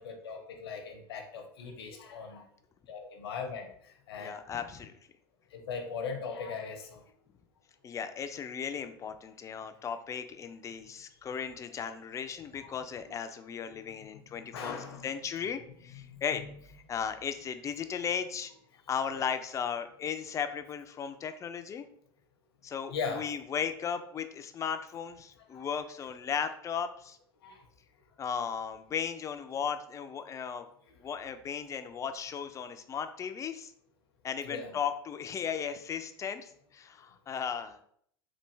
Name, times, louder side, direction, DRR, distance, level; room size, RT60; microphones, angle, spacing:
voice 1, 0.0-2.4 2.9-3.7 4.1-4.3 5.5-7.0 14.5-15.1 16.1-16.2 19.1-19.2 22.9-23.3 25.5-25.6 27.4-27.6 34.4-34.7, left 5 dB, 75° left, 5 dB, 0.7 m, -39 dB
voice 2, 4.2-4.9 7.8-18.5 18.9-21.8 22.6-27.2 28.2-30.7 31.0-33.7 34.2-37.8, left 7 dB, 25° left, 9 dB, 0.4 m, -36 dB
3.3 x 2.4 x 3.1 m, 0.65 s
hypercardioid pair, 80°, 13 cm